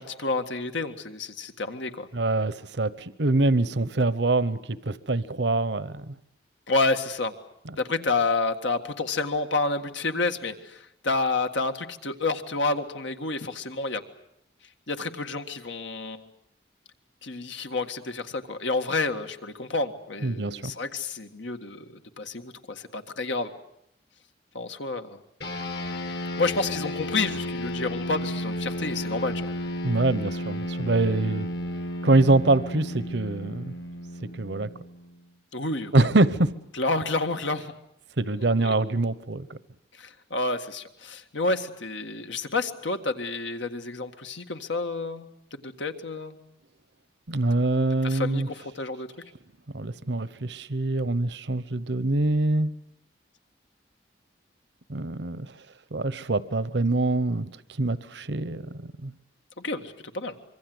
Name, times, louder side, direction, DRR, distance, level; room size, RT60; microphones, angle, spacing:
voice 1, 0.0-2.1 6.7-7.3 7.8-14.0 14.9-16.3 17.2-23.5 24.5-25.2 26.0-29.5 35.5-36.1 36.7-37.7 38.6-38.7 40.0-46.4 48.0-49.1 59.6-60.3, left 3 dB, 80° left, 7 dB, 1.8 m, -29 dB
voice 2, 2.1-6.1 7.7-7.8 20.2-20.7 29.8-31.5 32.0-33.7 34.4-34.7 35.9-36.5 38.2-39.6 47.3-48.5 49.7-52.7 54.9-55.5 55.9-57.5 57.8-59.1, right 2 dB, 70° right, 16 dB, 0.9 m, -24 dB
sound 1, 25.4-35.1, left 1 dB, 60° left, 2.3 m, -33 dB
25.5 x 23.5 x 7.9 m, 0.76 s
head